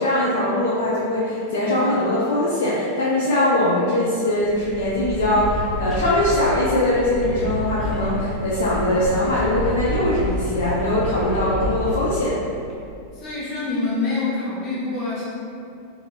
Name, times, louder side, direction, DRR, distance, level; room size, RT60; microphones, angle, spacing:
voice 1, 0.0-12.4, left 1 dB, 65° left, -8 dB, 0.4 m, -21 dB
sound 1, 4.4-12.9, equal, 15° left, 0.6 m, -29 dB
voice 2, 13.1-15.2, left 3 dB, 40° left, -9 dB, 1.1 m, -26 dB
2.7 x 2.6 x 2.4 m, 2.4 s
figure-of-eight pair, 90°, 0 cm